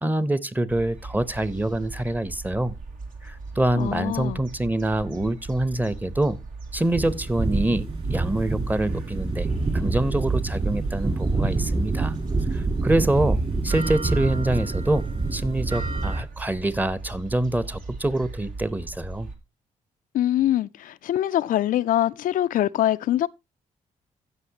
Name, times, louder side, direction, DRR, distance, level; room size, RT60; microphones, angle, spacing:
voice 1, 0.0-2.7 3.2-6.4 6.7-9.5 9.7-12.2 12.5-15.0 15.3-19.3, right 1 dB, 10° right, 0.9 m, -25 dB
sound 1, 0.7-19.4, right 3 dB, 70° right, 2.1 m, -40 dB
voice 2, 3.7-4.4 20.1-23.3, left 12 dB, 70° left, 0.4 m, -23 dB
sound 2, 6.8-16.2, right 3 dB, 40° right, 3.6 m, -26 dB
16.0 x 5.7 x 2.8 m
cardioid pair, 75°, 14 cm